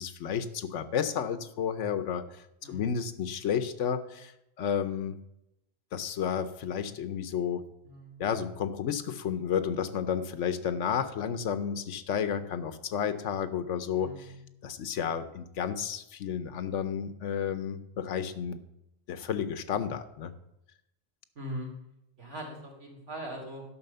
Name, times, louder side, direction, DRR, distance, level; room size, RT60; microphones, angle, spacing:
voice 1, 0.0-4.3 4.6-5.2 5.9-7.6 8.2-14.3 14.6-18.6 19.1-20.3, left 8 dB, 80° left, 12 dB, 1.1 m, -32 dB
voice 2, 2.6-2.9 7.8-8.2 14.0-14.3 21.3-21.7 22.2-23.6, right 1 dB, 75° right, -1 dB, 3.2 m, -41 dB
11.0 x 6.1 x 6.7 m, 0.85 s
omnidirectional pair, 1.2 m